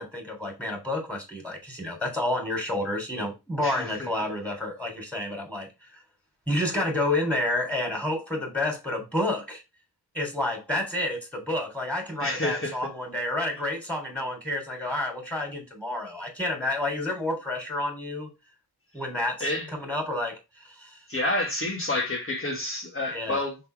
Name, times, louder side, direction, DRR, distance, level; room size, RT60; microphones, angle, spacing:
voice 1, 0.0-6.0 6.5-9.6 10.1-18.3 18.9-20.4 20.6-21.0 23.1-23.4, left 1 dB, 5° left, 3.6 m, -30 dB
voice 2, 3.6-4.1 12.2-12.8 19.4-19.7 21.1-23.6, left 2 dB, 30° left, 1.6 m, -29 dB
5.5 x 4.1 x 4.6 m
cardioid pair, 75°, 40 cm